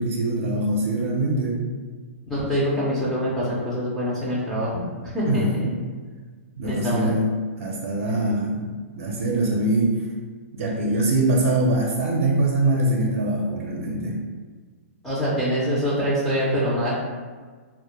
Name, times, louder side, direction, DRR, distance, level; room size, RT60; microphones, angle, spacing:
voice 1, 0.0-1.6 5.3-5.7 6.6-7.3 7.6-8.7 9.0-10.0 10.5-14.2, right 2 dB, 65° right, -2 dB, 0.5 m, -23 dB
voice 2, 2.3-5.7 6.6-7.1 15.0-16.9, equal, 5° left, -9 dB, 0.4 m, -25 dB
2.1 x 2.0 x 2.9 m, 1.5 s
hypercardioid pair, 150°, 8 cm